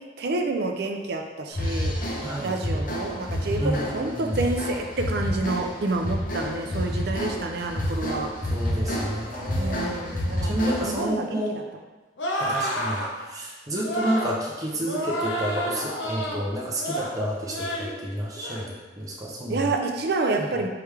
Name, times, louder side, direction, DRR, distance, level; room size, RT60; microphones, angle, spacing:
voice 1, 0.2-1.9 2.4-8.3 9.6-11.4 19.5-20.7, right 2 dB, 60° right, 3 dB, 0.5 m, -28 dB
sound 1, 1.5-11.1, equal, 50° left, 0.7 m, -29 dB
voice 2, 2.2-2.5 3.6-4.4 8.5-9.8 10.4-11.6 12.4-18.7 19.0-19.7 20.4-20.5, equal, 20° right, -4 dB, 0.6 m, -30 dB
sound 2, 12.2-13.1 13.8-14.4 14.8-16.4 16.8-17.1 17.5-17.9 18.3-18.7, equal, 85° left, 0.8 m, -29 dB
4.7 x 3.4 x 3.3 m, 1.2 s
head